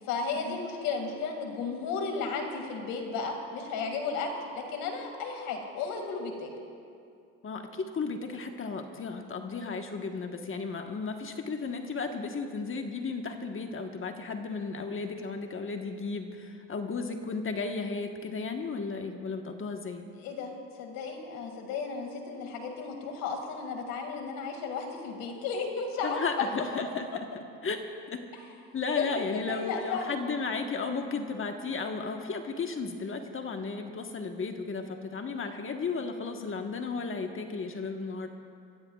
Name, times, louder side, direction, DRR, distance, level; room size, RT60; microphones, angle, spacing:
voice 1, 0.0-6.5 20.2-26.5 29.0-30.2, left 5 dB, 80° left, 3 dB, 2.2 m, -34 dB
voice 2, 7.4-20.0 26.0-27.1 27.6-27.8 28.1-28.2 28.7-38.3, left 4 dB, 40° left, 4 dB, 1.3 m, -34 dB
24.0 x 15.5 x 2.4 m, 2.5 s
supercardioid pair, 80°, 34 cm